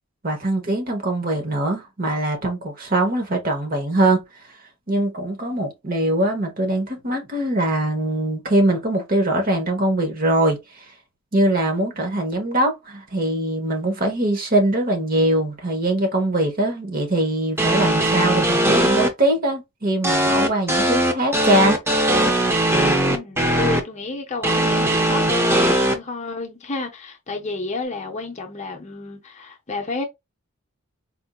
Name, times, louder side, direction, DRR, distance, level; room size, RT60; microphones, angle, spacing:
voice 1, 0.2-4.2 4.9-10.8 11.3-21.8, right 1 dB, 40° right, 1.0 m, -22 dB
sound 1, 17.6-19.1 20.0-23.8 24.4-25.9, right 1 dB, 10° right, 0.5 m, -19 dB
voice 2, 23.0-30.0, left 3 dB, 30° left, 0.6 m, -31 dB
4.3 x 2.6 x 2.3 m
head